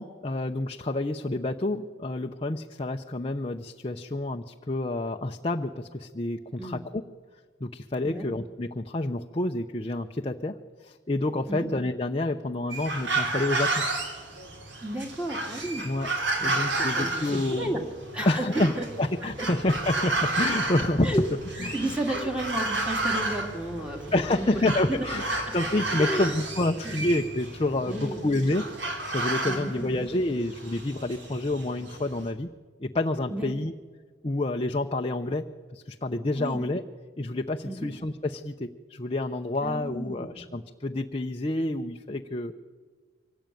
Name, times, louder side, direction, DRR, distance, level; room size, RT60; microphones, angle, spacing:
voice 1, 0.0-6.8 7.6-10.5 10.8-13.9 15.8-16.1 16.4-17.9 18.2-18.7 19.0-21.2 21.6-21.8 22.1-22.3 24.1-28.7 29.1-32.5 32.8-33.7 34.2-36.8 37.2-42.5, left 2 dB, 30° left, 3 dB, 0.7 m, -28 dB
sound 1, 12.7-32.3, right 2 dB, 60° right, 3.8 m, -32 dB
voice 2, 14.8-15.8 16.4-16.5 16.8-17.8 18.1-18.9 19.4-19.5 21.0-21.3 21.7-24.6 24.9-25.0 26.0-26.3 26.8-27.0 27.8-28.2 29.4-30.1 33.3-33.5 36.4-36.6 37.6-37.9 39.6-40.4, right 1 dB, 5° right, 2 dB, 2.3 m, -32 dB
24.5 x 18.0 x 9.1 m, 1.5 s
head